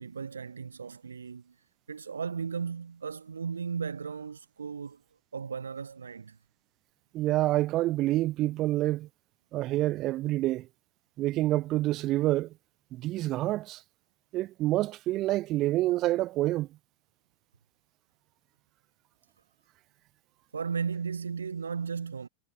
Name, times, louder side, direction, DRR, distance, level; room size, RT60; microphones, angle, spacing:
voice 1, 0.0-1.6 1.9-5.0 5.3-6.4 20.5-22.3, right 6 dB, 75° right, 1.0 m, -35 dB
voice 2, 7.1-9.1 9.5-10.7 11.2-12.5 12.9-13.8 14.3-16.7, right 16 dB, 35° right, 0.4 m, -27 dB
figure-of-eight pair, 90°, 0 cm